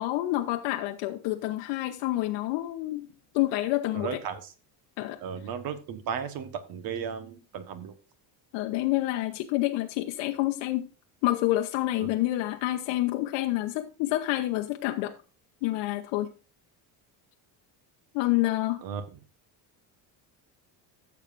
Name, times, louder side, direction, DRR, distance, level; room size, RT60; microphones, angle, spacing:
voice 1, 0.0-3.1 3.3-4.1 5.0-5.2 8.5-10.9 11.2-15.1 15.6-16.3 18.1-18.8, left 16 dB, 85° left, 0.9 m, -28 dB
voice 2, 3.9-4.5 5.2-7.9 12.0-12.1 18.8-19.2, right 7 dB, 55° right, 1.3 m, -35 dB
15.0 x 7.4 x 2.6 m
cardioid pair, 170°, 43 cm